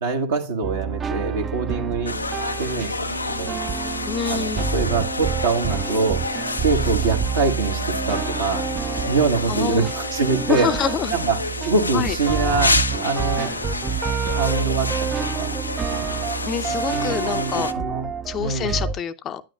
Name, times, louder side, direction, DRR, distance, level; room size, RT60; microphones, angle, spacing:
voice 1, 0.0-2.2 2.6-3.5 4.3-6.2 6.6-7.8 8.1-8.7 9.0-10.7 11.1-11.4 11.7-13.5 14.3-15.6 15.9-16.1 16.9-18.1 18.4-18.8, right 4 dB, 65° right, 1.2 m, -24 dB
sound 1, 0.6-19.0, right 6 dB, 20° right, 0.4 m, -28 dB
sound 2, 2.1-17.7, left 3 dB, 80° left, 0.5 m, -29 dB
voice 2, 4.1-4.7 9.5-9.9 10.5-11.1 11.9-12.2 16.5-17.7 18.3-19.4, left 7 dB, 30° left, 0.6 m, -26 dB
9.9 x 9.1 x 2.3 m
figure-of-eight pair, 90°, 0 cm